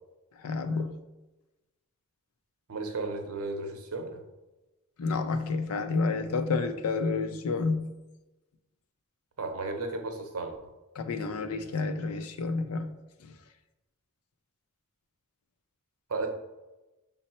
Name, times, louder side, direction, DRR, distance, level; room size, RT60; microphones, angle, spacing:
voice 1, 0.4-0.9 5.0-7.9 11.0-12.9, left 4 dB, 90° left, 9 dB, 0.5 m, -29 dB
voice 2, 2.7-4.2 9.4-10.6 16.1-16.3, right 3 dB, 80° right, 5 dB, 0.7 m, -34 dB
5.4 x 2.0 x 4.2 m, 1.1 s
head